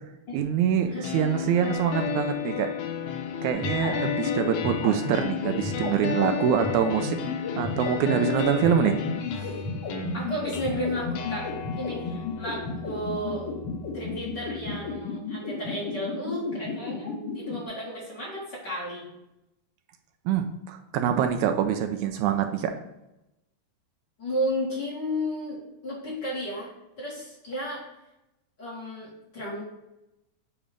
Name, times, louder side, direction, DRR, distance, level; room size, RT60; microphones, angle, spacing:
voice 1, 0.3-2.7 3.4-7.2 7.6-9.0 9.4-9.5 20.3-22.7, right 9 dB, 80° right, 6 dB, 1.9 m, -25 dB
sound 1, 1.0-15.0, left 8 dB, 80° left, 2.2 m, -33 dB
sound 2, 3.6-17.5, left 4 dB, 60° left, 1.9 m, -33 dB
voice 2, 10.1-11.5 11.8-13.5 13.9-19.1 24.2-26.7 27.0-27.8 28.6-29.6, equal, 40° left, -5 dB, 2.0 m, -33 dB
8.5 x 3.0 x 5.1 m, 0.91 s
omnidirectional pair, 3.5 m